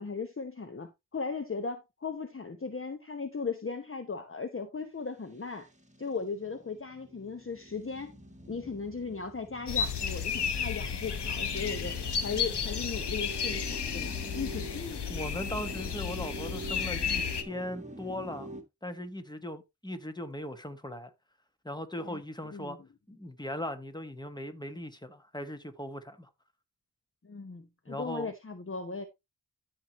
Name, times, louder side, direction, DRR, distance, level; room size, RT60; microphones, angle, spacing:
voice 1, 0.0-5.7 6.0-8.2 8.5-15.0 22.0-22.2 22.5-22.8 27.2-29.1, left 4 dB, 30° left, 0.9 m, -37 dB
sound 1, 5.3-18.6, right 1 dB, 15° right, 1.9 m, -46 dB
sound 2, 9.7-17.4, left 7 dB, 70° left, 1.1 m, -33 dB
voice 2, 15.1-18.5 18.8-21.1 21.6-22.8 23.1-26.3 27.9-28.3, left 1 dB, 10° left, 1.5 m, -39 dB
13.0 x 4.8 x 3.0 m
wide cardioid pair, 60°, 42 cm